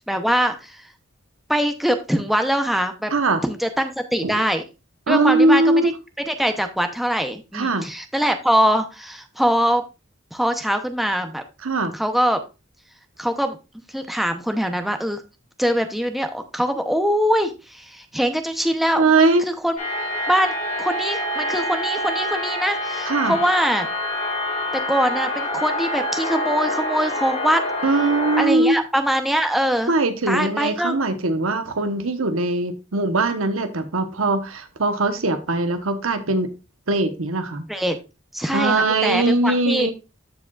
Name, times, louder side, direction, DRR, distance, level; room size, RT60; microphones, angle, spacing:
voice 1, 0.1-0.8 1.5-3.1 3.4-4.6 5.1-5.9 6.2-9.8 10.3-11.4 11.9-12.4 13.2-13.6 13.9-15.2 15.6-19.1 19.5-19.8 20.3-23.9 24.9-27.6 28.4-29.9 30.3-31.0 37.7-38.0 38.3-39.9, equal, ahead, 6 dB, 0.7 m, -22 dB
voice 2, 3.1-3.4 4.2-4.4 5.1-5.9 7.5-7.9 11.6-11.9 19.0-19.5 23.1-23.3 27.8-28.8 29.9-36.5 36.9-37.6 38.5-39.9, right 2 dB, 85° right, 8 dB, 1.1 m, -20 dB
sound 1, 19.8-28.5, left 1 dB, 40° left, 2.4 m, -26 dB
14.0 x 4.8 x 2.4 m, 0.28 s
head